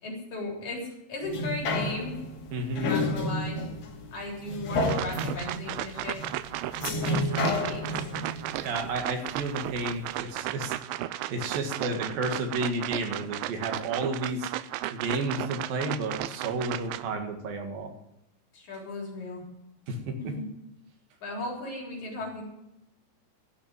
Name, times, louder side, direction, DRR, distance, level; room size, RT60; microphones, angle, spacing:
voice 1, 0.0-2.2 2.8-3.7 4.1-6.2 6.8-7.9 18.5-19.4 20.2-20.5 21.2-22.4, left 2 dB, 50° left, -2 dB, 4.8 m, -36 dB
sound 1, 1.2-9.7 10.2-10.3, left 2 dB, 80° left, 4.6 m, -31 dB
voice 2, 2.5-2.9 8.6-10.7 11.3-14.5 14.9-17.9 19.9-20.3, right 2 dB, 65° right, 4 dB, 3.3 m, -31 dB
sound 2, 4.9-17.0, right 15 dB, 85° right, 2.0 m, -35 dB
15.0 x 6.4 x 9.0 m, 0.86 s
omnidirectional pair, 4.6 m